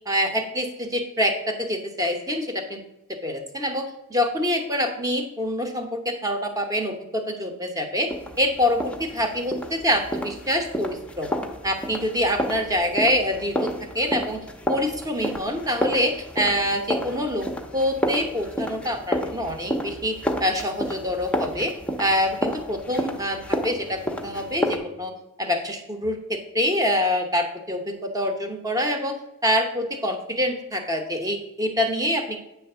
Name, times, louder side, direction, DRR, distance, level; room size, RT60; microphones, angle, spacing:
voice 1, 0.1-2.8 3.2-8.1 8.4-11.3 11.6-14.4 14.7-17.5 17.7-21.7 22.0-25.1 25.4-29.1 29.4-32.4, equal, 15° right, 4 dB, 1.0 m, -25 dB
sound 1, 8.1-24.8, equal, 5° left, 0.7 m, -30 dB
8.5 x 3.5 x 6.7 m, 0.90 s
head